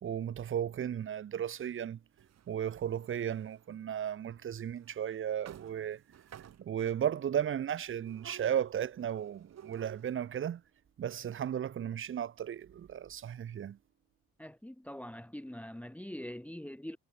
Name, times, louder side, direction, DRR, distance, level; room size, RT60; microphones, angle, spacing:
voice 1, 0.0-2.0 2.5-6.0 6.7-10.6 11.0-13.8, right 9 dB, 45° right, 0.8 m, -35 dB
sound 1, 2.2-3.6 4.4-4.5 4.9-5.0 5.5-7.0 8.0-10.3, right 10 dB, 60° right, 2.3 m, -53 dB
voice 2, 14.4-17.0, left 1 dB, 5° left, 1.5 m, -43 dB
cardioid pair, 90°, 30 cm